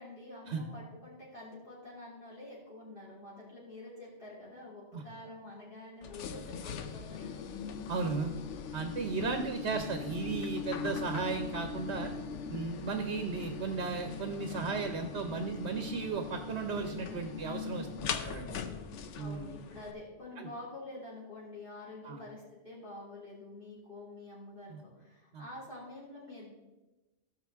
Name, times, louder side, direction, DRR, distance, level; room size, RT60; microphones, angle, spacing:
voice 1, 0.0-7.5 18.4-26.5, left 2 dB, 45° left, -8 dB, 3.3 m, -48 dB
sound 1, 6.0-19.9, left 6 dB, 90° left, 1.0 m, -40 dB
voice 2, 7.9-8.3 8.7-12.1 12.5-18.5 19.2-19.5 20.4-20.5 22.0-22.2 24.7-24.8 25.3-25.4, right 4 dB, 70° right, 6 dB, 1.2 m, -35 dB
16.0 x 6.6 x 3.5 m, 1.1 s
omnidirectional pair, 1.2 m